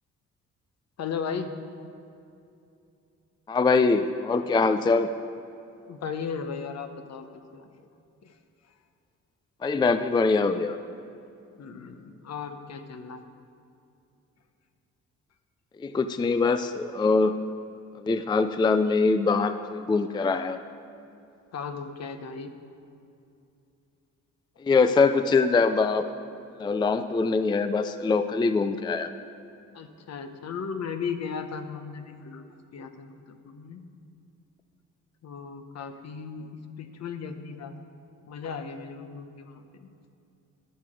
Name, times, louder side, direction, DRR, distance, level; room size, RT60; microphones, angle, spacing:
voice 1, 1.0-1.5 5.9-7.3 7.5-7.9 8.2-8.3 11.6-13.2 21.5-22.5 29.7-33.8 35.2-36.5 36.8-37.8 38.3-39.9, left 6 dB, 60° left, 8 dB, 1.0 m, -36 dB
voice 2, 3.5-5.1 9.6-10.8 15.8-17.4 18.0-20.6 24.6-26.1 26.6-29.1, left 4 dB, 15° left, 10 dB, 0.4 m, -23 dB
12.5 x 6.8 x 6.3 m, 2.7 s
cardioid pair, 90°, 30 cm